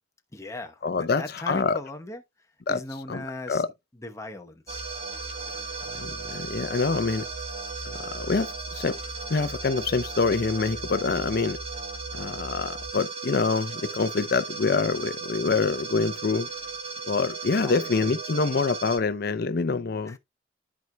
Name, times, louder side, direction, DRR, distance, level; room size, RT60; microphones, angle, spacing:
voice 1, 0.3-2.2 2.7-3.6 3.9-4.9 17.6-18.0 20.1-20.2, left 2 dB, 15° left, 0.9 m, -39 dB
voice 2, 0.8-1.8 2.7-2.8 3.1-3.2 3.5-3.7 5.9-7.3 8.0-9.0 9.3-11.6 12.1-16.5 17.1-20.2, left 4 dB, 55° left, 0.5 m, -26 dB
sound 1, 4.7-19.0, right 4 dB, 30° right, 1.4 m, -36 dB
13.0 x 4.6 x 2.3 m
head